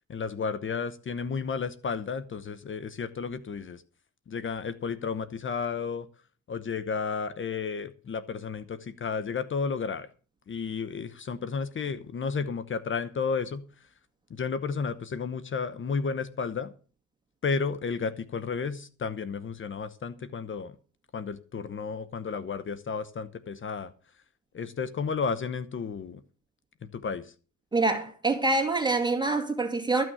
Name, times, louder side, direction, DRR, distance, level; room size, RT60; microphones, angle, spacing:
voice 1, 0.1-3.8 4.3-6.1 6.5-10.1 10.5-13.7 14.3-16.7 17.4-20.7 21.1-23.9 24.5-26.2 26.8-27.3, left 5 dB, 40° left, 0.9 m, -32 dB
voice 2, 27.7-30.0, right 3 dB, 15° right, 2.4 m, -25 dB
14.0 x 6.3 x 8.0 m
cardioid pair, 90°, 30 cm